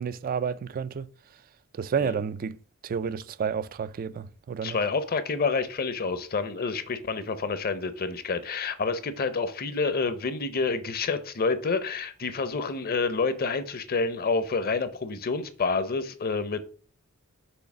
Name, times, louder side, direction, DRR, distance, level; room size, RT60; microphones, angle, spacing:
voice 1, 0.0-1.4 1.7-2.6 2.8-4.8, right 6 dB, 40° right, 0.3 m, -31 dB
voice 2, 4.6-16.6, left 4 dB, 45° left, 0.7 m, -28 dB
6.3 x 3.3 x 5.9 m
head